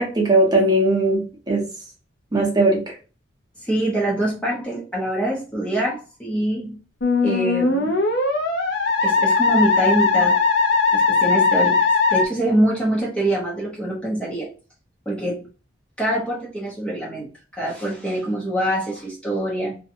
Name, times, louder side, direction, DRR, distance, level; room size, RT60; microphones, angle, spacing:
voice 1, 0.0-1.6 2.3-2.9, right 2 dB, 20° right, 0.8 m, -19 dB
voice 2, 3.6-6.8 7.2-8.0 9.0-10.4 10.9-14.5 15.1-15.5 16.0-17.3 17.6-19.8, right 1 dB, 5° left, 0.6 m, -24 dB
Musical instrument, 7.0-12.2, left 4 dB, 65° left, 0.6 m, -19 dB
2.6 x 2.2 x 2.5 m
head